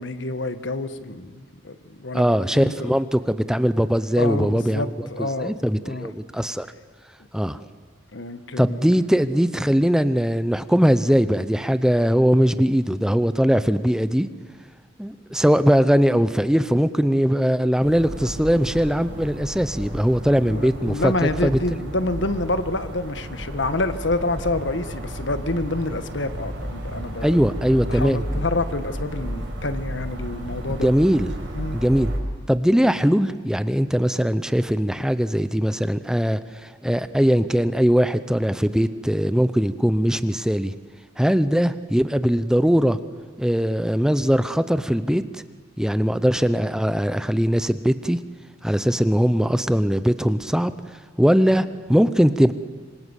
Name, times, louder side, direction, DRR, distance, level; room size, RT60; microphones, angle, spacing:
voice 1, 0.0-3.0 4.1-5.5 5.8-6.1 8.1-8.9 20.5-27.4 27.9-30.9 31.5-31.8, left 2 dB, 70° left, 11 dB, 1.4 m, -28 dB
voice 2, 2.1-6.7 7.3-7.6 8.6-14.3 15.0-21.1 21.4-21.8 27.2-28.2 30.7-31.3 31.7-32.1 32.5-40.7 41.2-43.0 43.4-45.4 45.8-48.2 48.6-50.7 51.2-52.5, equal, 5° right, 12 dB, 0.7 m, -20 dB
sound 1, 17.8-32.2, equal, 80° right, 6.2 m, -33 dB
26.0 x 26.0 x 8.3 m, 1.5 s
head